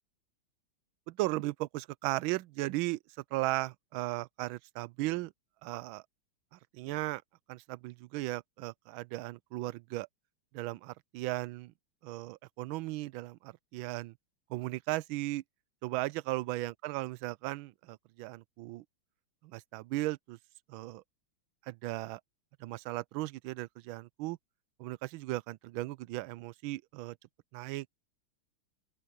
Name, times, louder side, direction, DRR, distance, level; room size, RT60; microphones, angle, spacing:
voice 1, 1.1-3.0 3.3-5.3 5.6-6.0 6.7-7.2 7.5-10.1 10.5-11.7 12.0-14.1 14.5-15.4 15.8-18.8 19.4-20.4 20.7-21.0 21.7-22.2 22.6-24.4 24.8-27.2 27.5-27.9, right 18 dB, 75° right, 1.3 m, -36 dB
open air
omnidirectional pair, 2.4 m